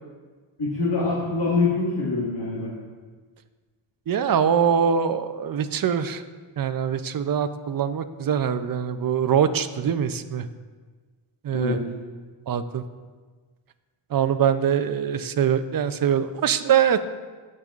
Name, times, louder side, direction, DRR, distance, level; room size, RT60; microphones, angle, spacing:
voice 1, 0.6-2.7 11.5-11.8, left 3 dB, 55° left, -8 dB, 1.8 m, -24 dB
voice 2, 4.1-6.2 6.6-10.5 11.4-11.8 12.5-12.8 14.1-17.0, right 8 dB, 45° right, 11 dB, 0.5 m, -23 dB
15.0 x 5.4 x 2.4 m, 1.4 s
wide cardioid pair, 105°, 49 cm